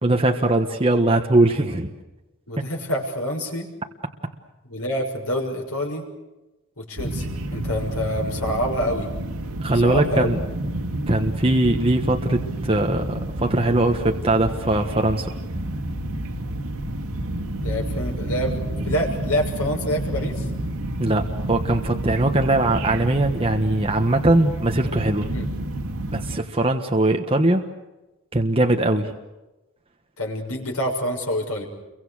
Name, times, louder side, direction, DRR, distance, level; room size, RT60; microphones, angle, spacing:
voice 1, 0.0-1.9 9.6-10.4 11.1-15.3 21.0-25.3 26.1-27.7 28.3-29.1, right 2 dB, 25° right, 3 dB, 1.4 m, -21 dB
voice 2, 2.5-3.7 4.7-6.0 6.8-9.1 9.8-10.3 17.6-20.5 25.3-25.5 30.2-31.6, equal, 90° left, 1 dB, 6.5 m, -27 dB
sound 1, 7.0-26.4, right 1 dB, 80° right, 2.2 m, -29 dB
29.5 x 24.0 x 6.5 m, 1.0 s
head